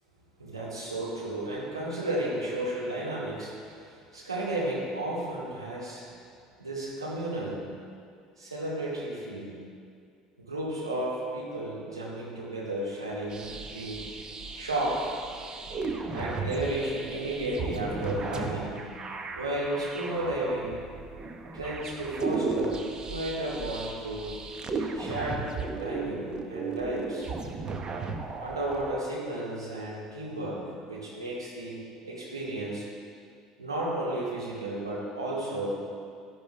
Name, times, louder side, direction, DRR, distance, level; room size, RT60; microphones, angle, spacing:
voice 1, 0.4-6.1 6.6-7.6 8.4-9.5 10.4-14.1 14.6-15.2 16.1-18.8 19.4-20.8 21.5-24.4 24.9-27.3 28.4-31.8 32.0-32.9 33.6-35.8, right 1 dB, 85° right, -6 dB, 2.5 m, -33 dB
sound 1, 13.3-29.0, right 4 dB, 30° right, 1.1 m, -35 dB
12.5 x 11.5 x 3.5 m, 2.3 s
figure-of-eight pair, 65°, 3 cm